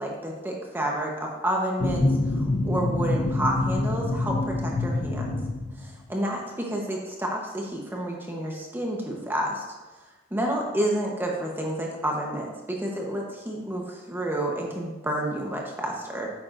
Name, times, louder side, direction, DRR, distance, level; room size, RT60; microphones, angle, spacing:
voice 1, 0.0-2.0 2.3-5.4 6.1-6.4 6.7-9.6 10.3-16.3, right 1 dB, 10° right, -1 dB, 1.0 m, -29 dB
sound 1, 1.8-6.1, left 2 dB, 45° left, 0.6 m, -26 dB
9.4 x 8.7 x 2.6 m, 1.2 s
head